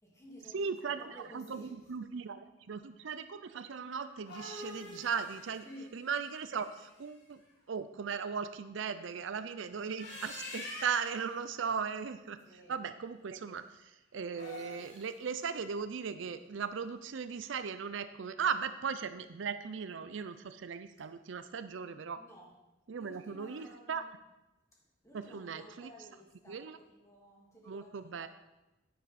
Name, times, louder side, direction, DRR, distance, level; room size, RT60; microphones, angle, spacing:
voice 1, 0.0-1.7 5.6-6.0 12.4-12.8 22.2-22.6 22.9-24.1 25.0-28.3, equal, 15° left, -3 dB, 2.7 m, -54 dB
voice 2, 0.5-5.6 5.9-7.4 7.7-12.4 12.7-22.2 22.9-24.0 25.1-25.9 26.5-26.8 27.7-28.3, right 6 dB, 70° right, 11 dB, 0.5 m, -38 dB
sound 1, 4.0-7.1 9.8-11.3 14.2-15.1, left 2 dB, 60° left, 3.2 m, -46 dB
10.0 x 9.4 x 4.2 m, 0.99 s
head